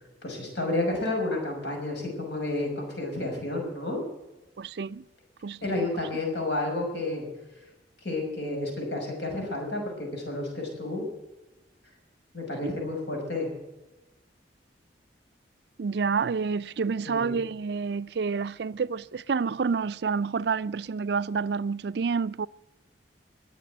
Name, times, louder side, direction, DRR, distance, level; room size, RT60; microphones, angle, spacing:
voice 1, 0.2-4.0 5.6-7.3 8.0-11.0 12.3-13.5 17.0-17.4, left 2 dB, 70° left, 5.8 m, -31 dB
voice 2, 4.6-5.1 5.4-5.9 15.8-22.5, right 5 dB, 65° right, 0.4 m, -29 dB
21.0 x 7.5 x 7.9 m
head